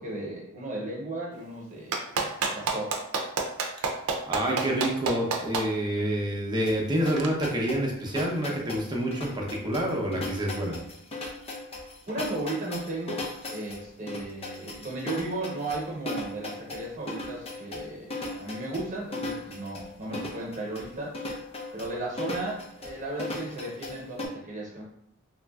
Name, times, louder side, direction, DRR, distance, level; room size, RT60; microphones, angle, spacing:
voice 1, 0.0-3.0 12.1-21.2 21.7-24.8, right 2 dB, 35° right, -3 dB, 1.0 m, -35 dB
Clapping, 1.9-5.6 7.2-7.3, right 4 dB, 85° right, 0.5 m, -27 dB
voice 2, 4.3-10.8, right 1 dB, 20° right, -2 dB, 0.6 m, -28 dB
sound 1, 6.7-24.3, left 2 dB, 30° left, 0.5 m, -37 dB
3.1 x 2.5 x 2.3 m, 0.78 s
head